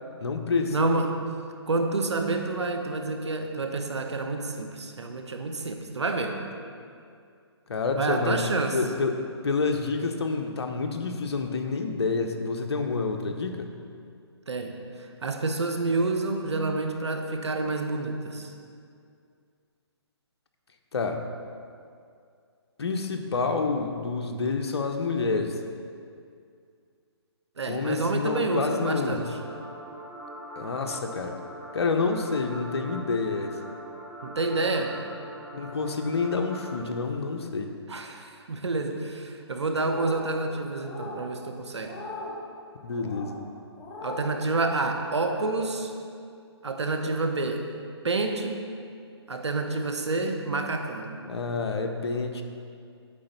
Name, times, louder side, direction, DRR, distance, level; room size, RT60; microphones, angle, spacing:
voice 1, 0.2-1.1 7.7-8.4 8.7-13.7 20.9-21.2 22.8-25.6 27.7-29.3 30.6-31.4 31.7-33.6 35.5-37.7 42.8-43.4 51.3-52.4, left 4 dB, 70° left, 5 dB, 0.9 m, -28 dB
voice 2, 0.7-1.2 1.7-6.4 8.0-8.8 14.5-18.5 27.6-29.4 34.2-35.0 37.9-42.0 44.0-45.9 46.6-47.7 48.0-48.6 49.3-51.2, right 3 dB, 80° right, 5 dB, 1.0 m, -28 dB
sound 1, 28.3-36.8, right 1 dB, 10° right, 1.5 m, -42 dB
sound 2, 39.7-40.3 40.8-41.2 41.8-42.4 42.9-43.3 43.8-44.3, left 2 dB, 15° left, 1.0 m, -39 dB
8.8 x 3.9 x 6.7 m, 2.3 s
hypercardioid pair, 145°, 14 cm